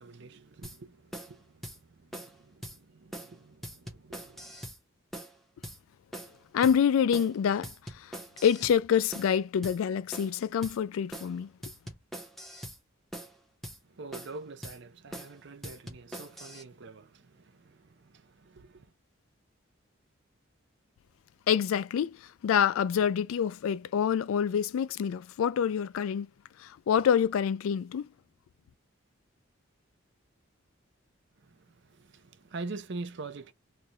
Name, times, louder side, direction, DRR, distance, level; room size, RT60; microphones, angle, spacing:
voice 1, 0.0-4.7 13.8-18.9 31.4-33.5, right 3 dB, 55° right, 0.6 m, -45 dB
sound 1, 0.6-0.8 1.1-1.3 1.6-1.8 2.1-2.3 2.6-2.8 3.1-3.3 3.6-4.8 5.1-5.3 5.6-5.8 6.1-6.4 6.6-6.8 7.1-7.3 7.6-8.8 9.1-9.3 9.6-9.8 10.1-10.4 10.6-10.8 11.1-11.3 11.6-12.8 13.1-13.3 13.6-13.8 14.1-14.4 14.6-14.8 15.1-15.3 15.6-16.6, right 1 dB, ahead, 0.8 m, -42 dB
voice 2, 6.5-8.1 8.4-11.5 21.5-22.2 22.4-26.3 26.6-28.1, left 8 dB, 85° left, 0.3 m, -26 dB
3.2 x 2.2 x 3.9 m
head